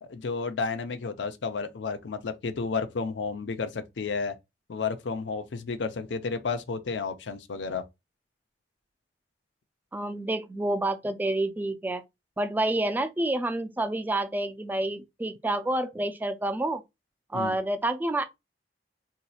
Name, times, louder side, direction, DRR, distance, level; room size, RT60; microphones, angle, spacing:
voice 1, 0.0-4.3 4.7-7.8 17.3-17.6, left 4 dB, 85° left, 0.5 m, -32 dB
voice 2, 9.9-12.0 12.4-16.8 17.3-18.2, right 1 dB, 10° right, 0.3 m, -28 dB
3.9 x 2.8 x 2.2 m
head